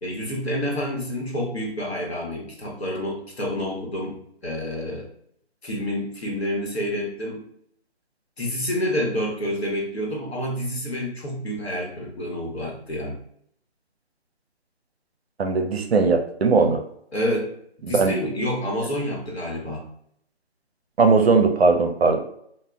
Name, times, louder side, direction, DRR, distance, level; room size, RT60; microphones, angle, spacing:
voice 1, 0.0-5.1 5.6-7.4 8.4-13.2 17.1-17.5 17.9-19.9, equal, 70° left, -1 dB, 1.1 m, -28 dB
voice 2, 15.4-16.8 17.9-18.1 21.0-22.2, right 4 dB, 65° right, 5 dB, 0.5 m, -19 dB
2.2 x 2.1 x 3.6 m, 0.69 s
figure-of-eight pair, 170°, 33 cm